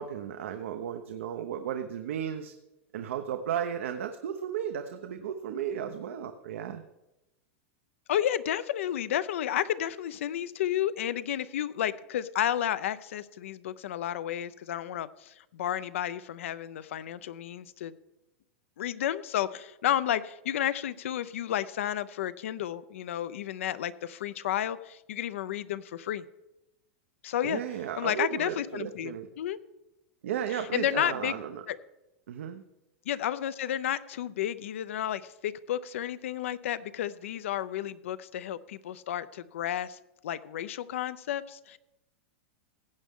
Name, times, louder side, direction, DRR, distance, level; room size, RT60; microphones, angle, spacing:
voice 1, 0.0-2.5 2.9-6.8 27.4-29.3 30.2-31.6 32.3-32.6, right 9 dB, 85° right, 7 dB, 0.8 m, -34 dB
voice 2, 8.1-17.9 18.8-26.2 27.2-27.6 28.0-29.6 30.5-31.4 31.7-31.8 33.1-40.0 40.2-41.8, left 11 dB, 80° left, 15 dB, 0.6 m, -32 dB
16.0 x 8.3 x 3.7 m, 0.95 s
supercardioid pair, 150°, 7 cm